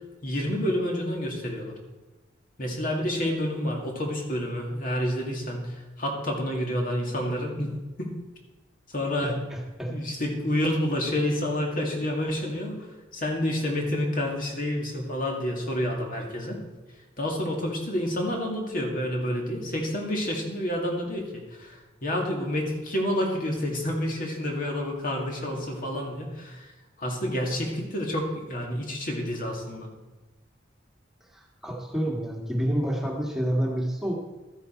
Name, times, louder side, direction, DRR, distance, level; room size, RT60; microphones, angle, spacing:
voice 1, 0.2-1.7 2.6-7.7 8.0-8.1 8.9-9.4 9.9-12.9 13.1-16.6 17.2-26.7 27.0-29.9, left 1 dB, 45° left, 0 dB, 2.2 m, -29 dB
voice 2, 9.2-9.9 31.3-34.1, equal, ahead, -1 dB, 1.7 m, -29 dB
13.5 x 9.5 x 4.5 m, 1.2 s
head